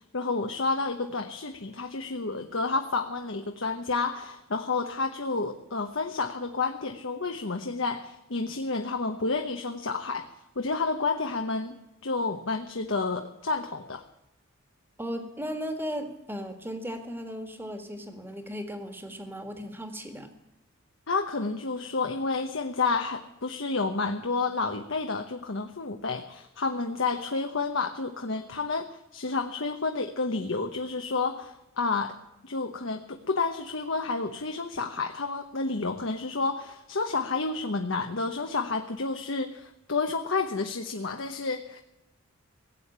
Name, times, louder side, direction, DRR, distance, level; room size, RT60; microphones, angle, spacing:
voice 1, 0.1-10.3 10.6-11.8 12.0-14.0 21.1-32.1 32.4-41.8, left 3 dB, 65° left, 5 dB, 1.0 m, -30 dB
voice 2, 15.0-20.3, equal, 10° right, 6 dB, 1.9 m, -36 dB
17.0 x 8.6 x 8.7 m, 0.92 s
head